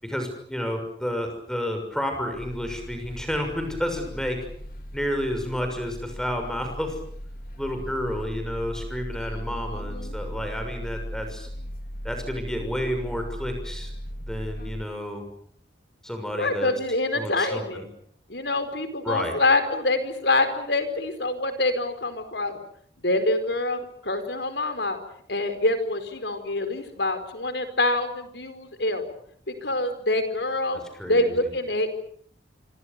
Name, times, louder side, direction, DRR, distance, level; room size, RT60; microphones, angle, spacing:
voice 1, 0.0-4.4 4.9-7.0 7.6-11.5 12.0-13.9 14.3-15.3 16.0-16.7 17.1-17.9 19.0-19.4 30.9-31.3, equal, 5° left, 5 dB, 6.3 m, -30 dB
sound 1, 2.3-14.8, equal, 50° left, 3.3 m, -37 dB
voice 2, 9.2-10.1 16.4-17.8 18.3-22.6 23.0-25.0 25.3-29.0 29.5-30.8 31.1-31.9, left 2 dB, 70° left, 9 dB, 4.8 m, -26 dB
26.5 x 26.5 x 6.9 m, 0.63 s
head